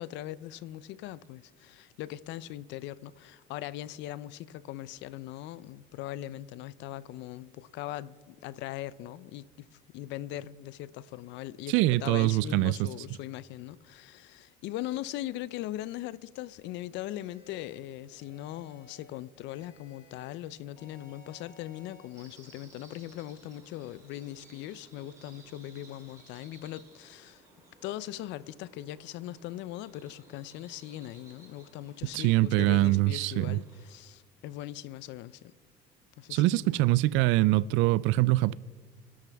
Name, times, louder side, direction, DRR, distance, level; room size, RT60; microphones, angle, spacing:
voice 1, 0.0-9.7 9.9-27.4 27.8-35.5 36.2-36.8, left 13 dB, 60° left, 0.5 m, -40 dB
voice 2, 11.7-12.9 32.1-33.6 36.3-38.5, right 18 dB, 70° right, 0.4 m, -24 dB
sound 1, 17.0-17.8 18.2-19.1 19.5-20.4 20.8-22.1, left 3 dB, 30° left, 4.1 m, -57 dB
sound 2, 22.1-33.9, right 2 dB, 15° right, 3.7 m, -58 dB
26.5 x 12.0 x 3.4 m
cardioid pair, 165°, 21 cm